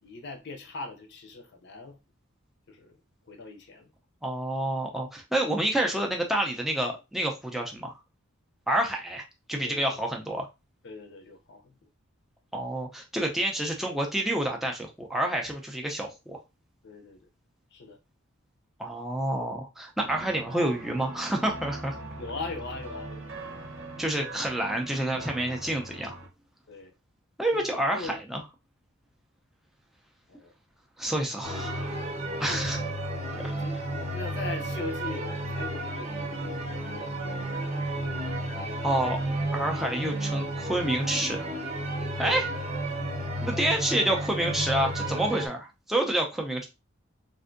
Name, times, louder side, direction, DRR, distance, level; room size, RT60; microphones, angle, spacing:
voice 1, 0.0-2.0 2.7-3.0 3.3-3.9 9.6-10.1 10.8-11.9 16.8-17.3 17.7-18.0 22.2-23.3 26.7-26.9 27.5-27.7 27.9-28.2 30.3-30.5 31.5-31.9 32.5-38.3, left 3 dB, 55° left, 0.5 m, -41 dB
voice 2, 4.2-8.0 8.7-10.5 12.5-16.4 18.8-22.0 24.0-26.2 27.4-28.4 31.0-31.9 32.4-32.8 38.8-39.2 39.5-41.5 42.2-42.5 43.4-46.7, right 1 dB, ahead, 0.4 m, -28 dB
sound 1, 20.0-26.3, right 2 dB, 70° right, 0.9 m, -41 dB
sound 2, 31.4-45.5, right 1 dB, 30° right, 0.7 m, -32 dB
3.4 x 2.5 x 2.5 m
head